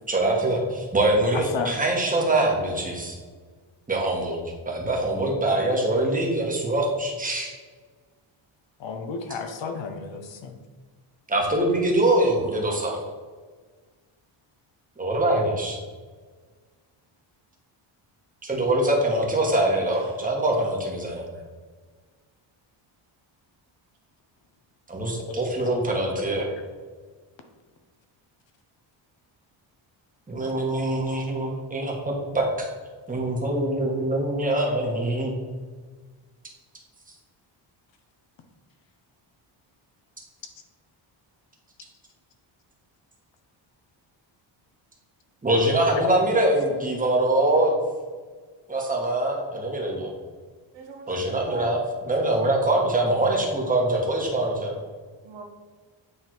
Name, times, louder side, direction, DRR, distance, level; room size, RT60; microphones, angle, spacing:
voice 1, 0.1-3.1 3.9-4.4 4.6-7.5 11.3-13.0 15.0-15.8 18.4-21.3 24.9-26.5 30.3-32.4 33.1-35.3 45.4-47.8 48.7-50.1 51.1-54.7, right 1 dB, 15° right, -1 dB, 1.4 m, -24 dB
voice 2, 8.8-10.5 25.8-26.3 45.9-46.1, left 5 dB, 65° left, 6 dB, 0.9 m, -32 dB
voice 3, 50.7-51.7 55.2-55.4, right 3 dB, 65° right, 2 dB, 1.3 m, -42 dB
8.4 x 3.5 x 4.6 m, 1.5 s
cardioid pair, 150°, 49 cm